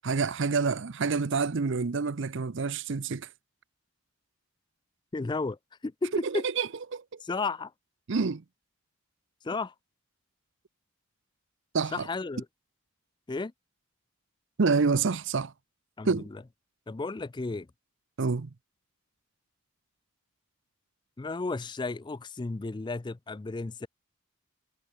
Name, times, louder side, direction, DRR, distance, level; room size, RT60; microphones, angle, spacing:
voice 1, 0.0-3.3 6.2-7.2 8.1-8.4 11.7-12.1 14.6-15.5 16.0-16.3 18.2-18.5, right 4 dB, 60° right, 0.6 m, -28 dB
voice 2, 5.1-5.6 5.8-6.4 7.2-7.7 9.4-9.7 11.9-12.5 13.3-13.5 16.0-16.4 16.9-17.7 21.2-23.9, left 3 dB, 20° left, 0.4 m, -33 dB
head